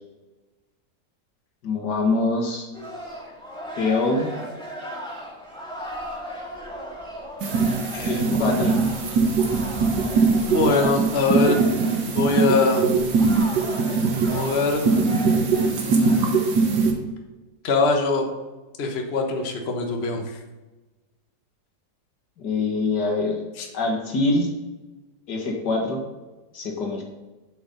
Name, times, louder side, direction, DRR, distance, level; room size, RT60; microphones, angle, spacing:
voice 1, 1.6-2.7 3.8-4.3 8.1-8.8 22.4-23.4 23.7-24.5 25.3-26.0 26.5-27.0, left 3 dB, 85° left, 1 dB, 2.2 m, -24 dB
sound 1, 2.7-16.2, equal, 5° left, 1.9 m, -36 dB
sound 2, 7.4-16.9, right 4 dB, 85° right, 1.9 m, -21 dB
voice 2, 7.9-8.5 10.4-11.6 12.1-12.9 14.2-14.8 15.8-16.3 17.6-18.3 18.8-20.2 23.6-23.7, left 3 dB, 40° left, 2 dB, 1.3 m, -23 dB
7.9 x 6.1 x 5.5 m, 1.2 s
omnidirectional pair, 1.8 m